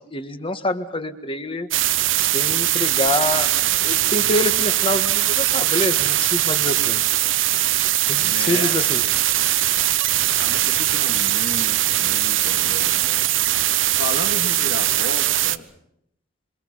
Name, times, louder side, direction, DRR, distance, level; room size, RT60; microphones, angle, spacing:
voice 1, 0.1-1.7 2.2-3.5 3.8-7.0 8.1-9.0, left 2 dB, 30° left, 8 dB, 1.7 m, -26 dB
sound 1, 1.7-15.6, right 14 dB, 85° right, 0.8 m, -20 dB
voice 2, 8.2-8.7 10.4-13.5 13.8-15.7, left 2 dB, 70° left, 4 dB, 3.0 m, -33 dB
26.5 x 24.5 x 5.7 m, 0.73 s
head